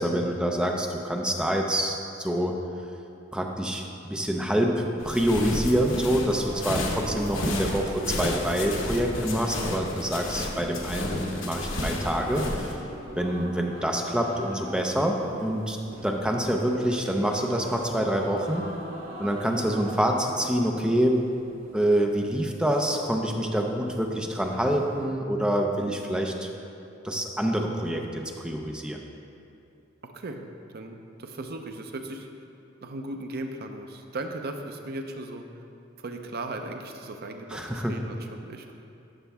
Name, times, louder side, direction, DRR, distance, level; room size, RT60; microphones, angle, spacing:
voice 1, 0.0-2.6 3.3-3.8 4.1-12.8 13.2-15.8 16.0-18.7 19.2-21.2 21.7-26.5 27.0-29.0 37.5-38.0, equal, 5° right, 2 dB, 0.5 m, -26 dB
sound 1, 5.0-12.7, left 1 dB, 90° left, 1.0 m, -32 dB
sound 2, 6.3-25.1, equal, 85° right, 1.4 m, -41 dB
voice 2, 30.0-30.4 30.7-32.4 32.8-35.6 36.0-38.8, right 2 dB, 55° right, 5 dB, 0.6 m, -37 dB
11.0 x 5.8 x 3.5 m, 2.7 s
head